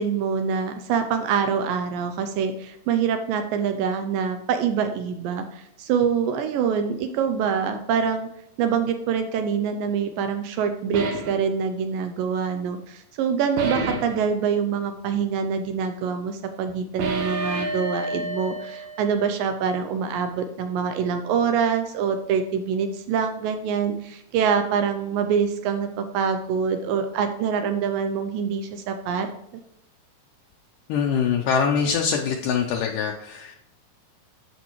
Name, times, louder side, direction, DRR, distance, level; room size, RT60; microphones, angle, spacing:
voice 1, 0.0-8.3 8.6-29.3, right 6 dB, 80° right, 7 dB, 2.2 m, -25 dB
sound 1, 10.9-11.4 13.6-14.2 17.0-19.4, right 2 dB, 60° right, 2.2 m, -29 dB
voice 2, 30.9-33.5, left 6 dB, 75° left, 1 dB, 2.1 m, -23 dB
13.5 x 5.2 x 3.1 m, 0.77 s
omnidirectional pair, 4.2 m